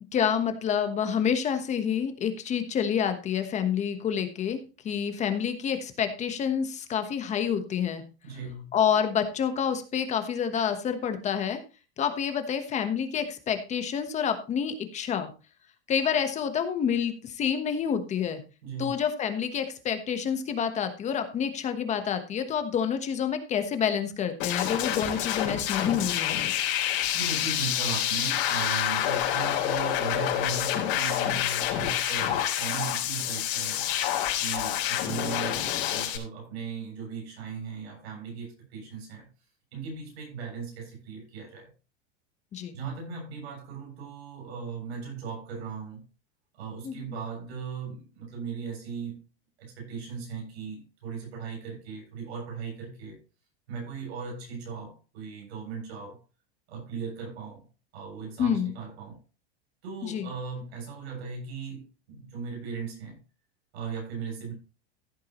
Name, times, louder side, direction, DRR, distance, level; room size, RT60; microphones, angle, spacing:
voice 1, 0.1-4.6 4.8-8.0 8.7-11.6 12.0-15.3 15.9-18.4 18.8-26.5 42.5-42.8 46.8-47.1 58.4-58.7 60.0-60.3, left 8 dB, 20° left, 1.2 m, -28 dB
voice 2, 8.2-8.7 18.6-18.9 27.1-34.0 34.4-39.3 39.7-41.7 42.7-46.0 46.5-49.2 49.6-53.2 53.7-56.2 56.7-57.6 57.9-59.2 59.8-63.2 63.7-64.5, right 5 dB, 85° right, 7.3 m, -38 dB
sound 1, 24.4-36.2, left 11 dB, 60° left, 3.8 m, -28 dB
15.0 x 8.3 x 3.1 m
supercardioid pair, 160°, 31 cm